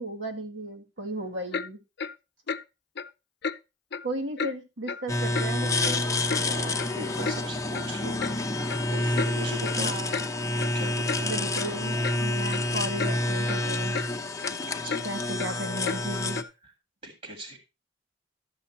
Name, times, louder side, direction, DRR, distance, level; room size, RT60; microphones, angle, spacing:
voice 1, 0.0-1.8 4.0-6.0 9.8-10.3 11.2-14.0 15.0-16.4, right 1 dB, 75° right, 2.1 m, -35 dB
Clock, 1.5-1.7 2.0-2.1 2.5-2.6 3.0-3.1 3.4-3.6 3.9-4.1 4.4-4.5 4.9-5.0 5.4-5.5 5.8-6.4 6.8-6.9 7.2-7.4 7.7-7.9 8.2-8.4 8.7-8.8 9.2-9.3 9.6-9.8 10.1-10.3 10.6-10.7 11.1-11.2 11.6-11.7 12.0-12.2 12.5-12.7 13.0-13.1 13.5-13.6 13.9-14.1 14.4-14.5 14.9-15.0 15.4-15.5 15.8-16.0 16.4-16.5, left 5 dB, 60° left, 0.6 m, -32 dB
sound 1, 5.1-16.4, left 2 dB, 20° left, 0.9 m, -28 dB
voice 2, 6.4-8.1 8.6-10.0 10.7-11.5 14.5-15.0 17.0-17.6, right 1 dB, 40° right, 1.9 m, -39 dB
13.0 x 7.2 x 4.1 m
head